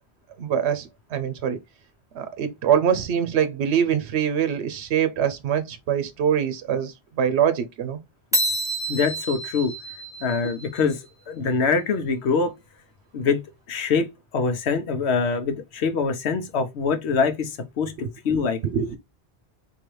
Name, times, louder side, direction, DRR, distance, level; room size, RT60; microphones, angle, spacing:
voice 1, 0.4-1.6 2.1-8.0 18.6-19.0, right 8 dB, 90° right, 0.9 m, -24 dB
sound 1, 8.3-11.0, right 1 dB, 5° right, 0.8 m, -28 dB
voice 2, 8.9-9.7 10.2-11.0 11.3-12.5 13.1-13.4 13.7-14.1 14.3-18.6, left 5 dB, 85° left, 1.0 m, -24 dB
3.9 x 2.7 x 3.1 m
omnidirectional pair, 1.1 m